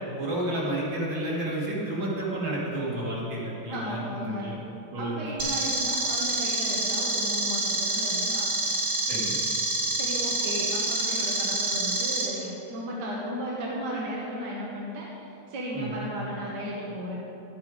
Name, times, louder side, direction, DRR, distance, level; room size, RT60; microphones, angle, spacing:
voice 1, 0.2-4.6 4.9-5.2 9.1-9.4 15.7-15.9, right 1 dB, 80° right, -6 dB, 3.3 m, -31 dB
voice 2, 3.7-4.5 5.0-8.5 9.9-17.1, equal, 65° right, -4 dB, 1.9 m, -35 dB
sound 1, 5.4-12.2, right 2 dB, 35° right, 2.1 m, -27 dB
12.0 x 9.3 x 5.1 m, 2.9 s
omnidirectional pair, 2.1 m